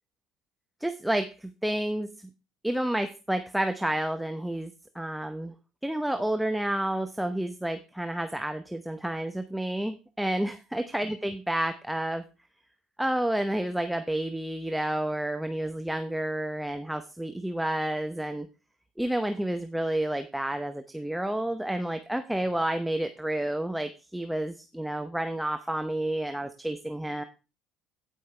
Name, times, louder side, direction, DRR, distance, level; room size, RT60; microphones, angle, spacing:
voice 1, 0.8-2.1 2.6-5.5 5.8-12.2 13.0-18.5 19.0-27.2, right 1 dB, 5° right, 7 dB, 0.8 m, -30 dB
16.5 x 5.5 x 3.3 m, 0.31 s
hypercardioid pair, 65°, 0 cm